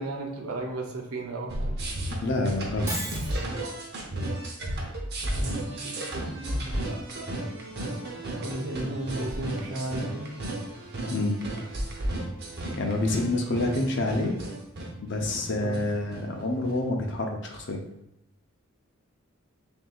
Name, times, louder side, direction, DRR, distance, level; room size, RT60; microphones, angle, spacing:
voice 1, 0.0-1.8 5.3-6.7 8.4-10.4 15.6-15.8, right 2 dB, 80° right, 2 dB, 0.6 m, -35 dB
sound 1, 1.5-16.8, right 1 dB, 50° right, 0.8 m, -33 dB
voice 2, 2.2-2.9 5.2-5.3 11.1-11.4 12.8-14.4 15.0-17.8, left 2 dB, 55° left, 2 dB, 0.6 m, -27 dB
Shatter, 2.9-3.4, right 1 dB, 10° right, 0.7 m, -33 dB
6.3 x 2.7 x 2.4 m, 0.82 s
head